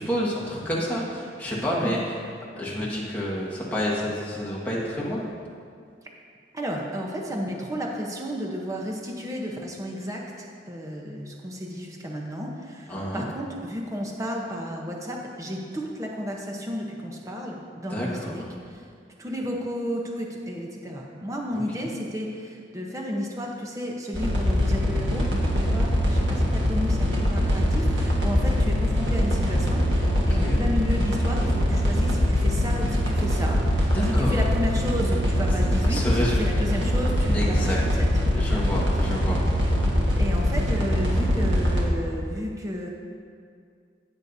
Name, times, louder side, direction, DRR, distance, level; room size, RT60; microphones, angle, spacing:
voice 1, 0.0-2.0 2.6-5.2 12.9-13.3 17.9-18.3 21.5-21.6 30.3-30.6 33.9-34.4 35.8-36.5 37.3-37.8 38.3-39.4, equal, 10° left, -6 dB, 1.6 m, -29 dB
voice 2, 6.5-18.8 19.2-25.3 25.5-38.1 38.5-38.6 40.2-42.9, equal, 20° right, -1 dB, 0.8 m, -32 dB
sound 1, 24.1-41.8, equal, 85° right, 1.5 m, -23 dB
17.5 x 6.5 x 2.7 m, 2.2 s
head